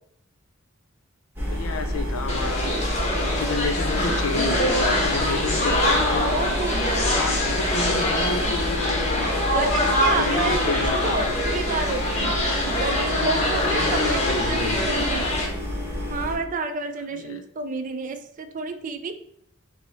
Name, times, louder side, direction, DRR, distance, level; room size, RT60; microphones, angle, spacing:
sound 1, 1.4-16.4, equal, 10° right, 1.1 m, -29 dB
voice 1, 1.5-2.6 3.1-6.4 6.9-9.3 10.1-11.2 12.9-14.9 17.1-17.4, left 4 dB, 75° left, 7 dB, 0.5 m, -31 dB
sound 2, 2.3-15.5, left 1 dB, 35° left, 0.9 m, -24 dB
voice 2, 6.2-7.0 9.5-12.3 12.7-15.3 16.1-19.1, right 3 dB, 40° right, 7 dB, 0.4 m, -30 dB
4.5 x 2.0 x 4.0 m, 0.68 s
head